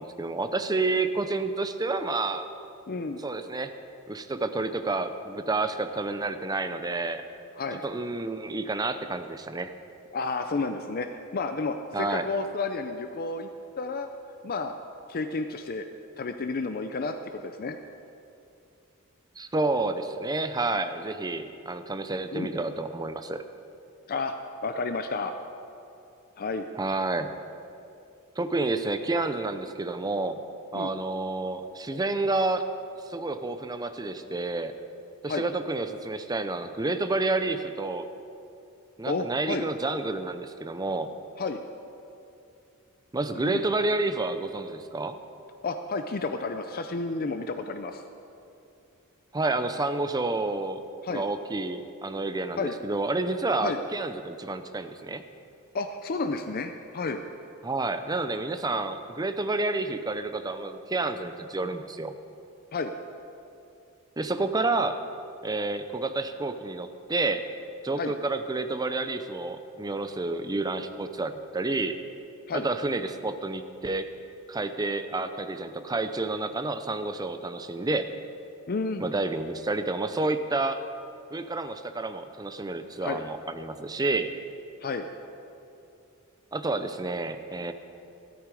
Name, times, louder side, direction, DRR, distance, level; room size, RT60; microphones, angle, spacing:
voice 1, 0.0-2.5 3.2-3.7 4.1-7.2 7.8-9.7 11.9-12.3 19.4-23.4 26.8-27.3 28.4-30.4 30.7-32.7 33.1-34.7 35.2-38.0 39.0-41.1 43.1-45.2 49.3-55.2 57.6-62.1 64.2-65.0 65.4-67.5 67.8-72.0 72.5-74.1 74.5-78.1 79.0-80.8 81.3-84.3 86.5-87.7, right 2 dB, 20° right, 9 dB, 0.6 m, -29 dB
voice 2, 2.9-3.2 7.6-7.8 10.1-13.5 13.8-14.1 14.4-14.7 15.1-15.8 16.2-17.8 22.3-22.5 24.1-24.3 24.6-25.3 26.4-26.6 30.7-30.9 35.3-35.5 39.1-39.7 41.4-41.6 43.3-43.6 45.6-48.0 51.0-51.2 52.6-52.8 53.6-53.8 55.7-57.2 62.7-62.9 68.0-68.1 72.5-72.7 78.7-79.1 83.0-83.2 84.8-85.1, left 3 dB, 45° left, 7 dB, 0.6 m, -31 dB
14.0 x 13.0 x 4.9 m, 2.6 s
head